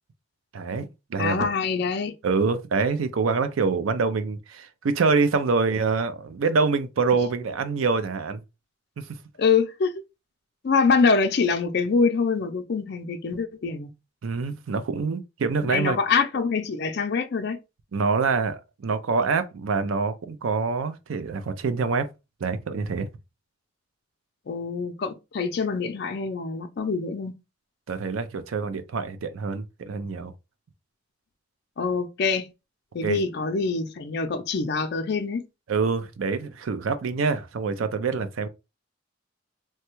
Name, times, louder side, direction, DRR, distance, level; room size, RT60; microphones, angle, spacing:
voice 1, 0.5-1.5 2.2-8.4 9.0-9.1 14.2-16.0 17.9-22.1 22.4-23.1 27.9-30.3 33.0-33.2 35.7-38.5, right 4 dB, 85° right, 0.4 m, -25 dB
voice 2, 1.2-2.1 9.4-9.9 10.6-13.9 15.6-17.6 24.5-27.3 31.8-32.5 32.9-35.5, left 5 dB, 55° left, 0.4 m, -25 dB
3.2 x 2.2 x 3.0 m
head